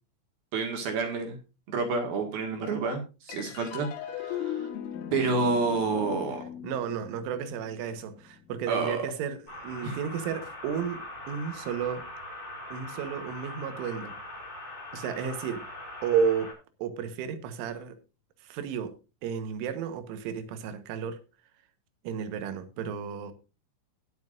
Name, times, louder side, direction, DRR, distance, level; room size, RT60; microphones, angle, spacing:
voice 1, 0.5-1.4 1.7-4.7 5.1-6.4 8.7-9.0 9.8-9.9, right 4 dB, 60° right, 3.2 m, -29 dB
sound 1, 3.3-10.0, left 10 dB, 90° left, 4.1 m, -39 dB
voice 2, 6.6-12.1 12.7-14.2 14.9-15.7 16.0-16.5 16.8-18.0 18.4-19.0 19.2-21.2 22.1-23.3, right 7 dB, 80° right, 3.7 m, -32 dB
sound 2, 9.5-16.5, left 1 dB, 20° left, 5.9 m, -42 dB
20.5 x 7.1 x 2.5 m
omnidirectional pair, 5.7 m